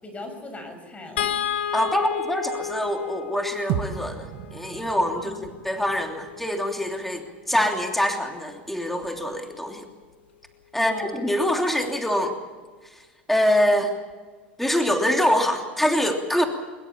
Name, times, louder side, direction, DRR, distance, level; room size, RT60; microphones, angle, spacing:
voice 1, 0.0-1.3 5.2-5.4 10.7-11.3, left 2 dB, 20° left, 6 dB, 6.7 m, -39 dB
sound 1, 1.2-7.5 9.0-9.2 9.5-9.7, left 9 dB, 75° left, 1.5 m, -33 dB
voice 2, 1.7-9.9 10.7-12.3 12.8-14.0 14.6-16.4, equal, 5° left, 3 dB, 3.1 m, -24 dB
sound 2, 3.7-8.0, right 10 dB, 55° right, 1.7 m, -35 dB
23.5 x 21.5 x 7.2 m, 1.4 s
hypercardioid pair, 85°, 6 cm